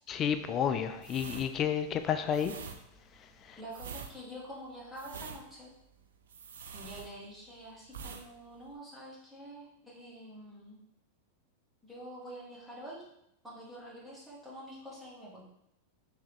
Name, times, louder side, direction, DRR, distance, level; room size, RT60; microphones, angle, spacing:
voice 1, 0.1-2.5 3.5-3.6, left 8 dB, 35° left, 9 dB, 0.3 m, -31 dB
sound 1, 1.0-7.5 7.9-8.3 8.5-8.8, right 6 dB, 75° right, 0.4 m, -45 dB
voice 2, 3.5-5.7 6.7-10.8 11.8-13.0 13.4-15.4, equal, 5° right, -7 dB, 1.5 m, -47 dB
3.5 x 3.1 x 3.4 m, 0.79 s
hypercardioid pair, 100°, 0 cm